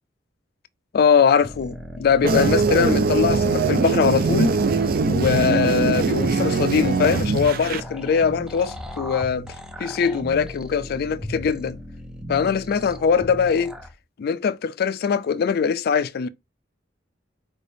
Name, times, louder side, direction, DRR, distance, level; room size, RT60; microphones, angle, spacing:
voice 1, 0.9-4.6 5.1-9.5 9.8-11.8 12.3-13.7 14.2-16.3, left 6 dB, 55° left, 0.3 m, -21 dB
sound 1, 1.4-13.9, equal, 5° right, 0.5 m, -35 dB
sound 2, 2.2-7.8, right 4 dB, 55° right, 0.4 m, -22 dB
4.5 x 3.3 x 2.6 m
head